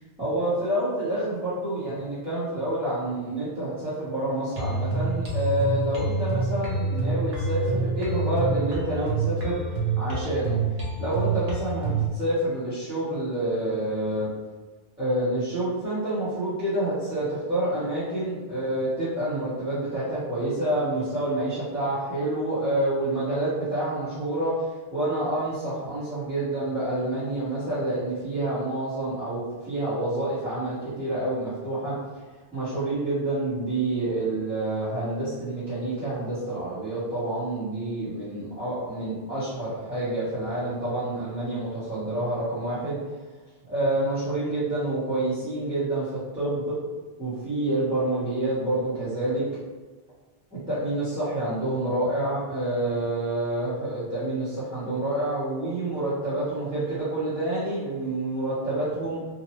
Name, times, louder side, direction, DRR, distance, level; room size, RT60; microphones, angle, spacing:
voice 1, 0.2-9.6 10.0-10.6 11.0-14.3 15.0-32.0 32.5-43.0 43.7-46.8 47.2-49.5 50.5-59.2, right 1 dB, 5° right, -13 dB, 0.9 m, -28 dB
sound 1, 4.6-12.1, right 3 dB, 45° right, 0.6 m, -27 dB
3.0 x 2.2 x 3.0 m, 1.3 s
omnidirectional pair, 1.2 m